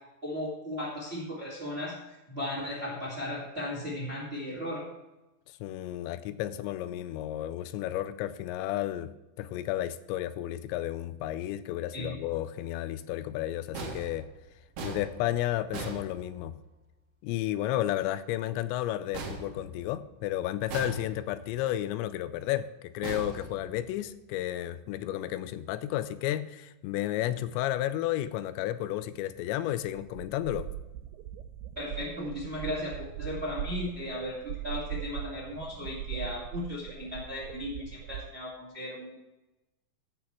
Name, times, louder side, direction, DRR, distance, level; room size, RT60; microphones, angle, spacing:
voice 1, 0.2-1.9 2.3-4.8 11.9-12.2 31.7-39.1, left 1 dB, 25° right, 1.3 m, -36 dB
voice 2, 5.5-9.1 9.4-14.3 14.8-16.6 17.2-30.7, left 13 dB, 85° left, 2.8 m, -32 dB
sound 1, 13.7-16.8 19.1-20.2 20.7-21.5 23.0-24.1, right 3 dB, 65° right, 1.5 m, -40 dB
sound 2, 29.4-29.5 29.7-38.2, right 12 dB, 90° right, 3.1 m, -40 dB
15.0 x 6.2 x 4.6 m
omnidirectional pair, 5.1 m